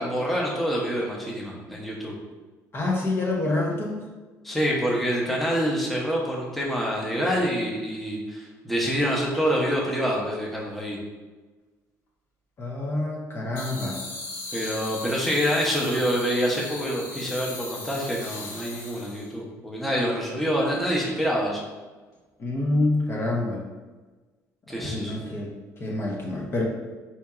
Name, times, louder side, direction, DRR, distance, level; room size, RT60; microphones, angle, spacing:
voice 1, 0.0-2.1 4.4-11.0 14.5-21.6 24.7-25.2, equal, ahead, -4 dB, 0.7 m, -26 dB
voice 2, 2.7-4.0 12.6-14.0 22.4-23.6 24.8-25.5 25.8-26.6, left 2 dB, 35° left, -2 dB, 0.7 m, -27 dB
sound 1, 13.6-19.3, left 2 dB, 70° left, 1.3 m, -38 dB
4.2 x 2.8 x 2.4 m, 1.3 s
cardioid pair, 105°, 7 cm